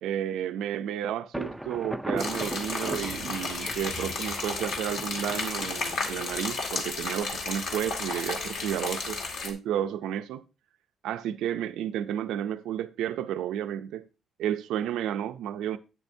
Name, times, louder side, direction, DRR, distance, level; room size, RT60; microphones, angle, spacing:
voice 1, 0.0-10.4 11.0-14.1 14.4-15.8, right 10 dB, 90° right, 0.4 m, -32 dB
Thunder, 1.3-7.0, right 1 dB, 5° right, 0.3 m, -38 dB
sound 1, 2.2-9.5, left 3 dB, 60° left, 1.9 m, -33 dB
10.5 x 8.9 x 2.7 m
cardioid pair, 175°, 0 cm